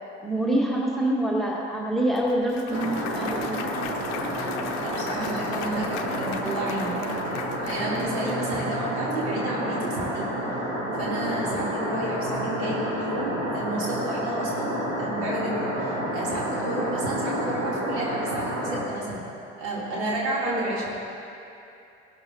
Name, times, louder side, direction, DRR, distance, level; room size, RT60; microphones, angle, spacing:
voice 1, 0.2-3.7 12.2-12.4 20.4-20.6, right 1 dB, ahead, -2 dB, 1.6 m, -26 dB
Clapping / Cheering / Applause, 2.2-8.4, left 8 dB, 60° left, 0.7 m, -38 dB
sound 1, 2.7-18.8, right 1 dB, 45° right, 3.1 m, -30 dB
voice 2, 4.7-10.3 10.9-19.2 19.6-20.8, right 1 dB, 65° right, -6 dB, 3.0 m, -31 dB
17.5 x 12.0 x 2.7 m, 2.8 s
figure-of-eight pair, 60°, 35 cm